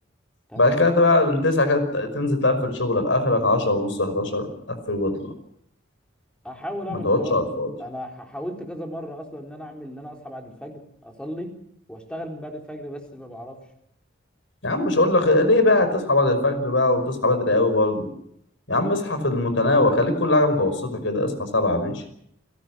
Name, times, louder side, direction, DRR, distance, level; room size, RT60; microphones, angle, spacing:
voice 1, 0.6-5.1 6.9-7.7 14.6-18.1 18.7-22.0, left 2 dB, 75° left, 9 dB, 5.5 m, -21 dB
voice 2, 6.4-7.5 7.8-11.5 11.9-13.6, equal, 5° left, 2 dB, 4.0 m, -36 dB
30.0 x 17.5 x 6.3 m, 0.72 s
head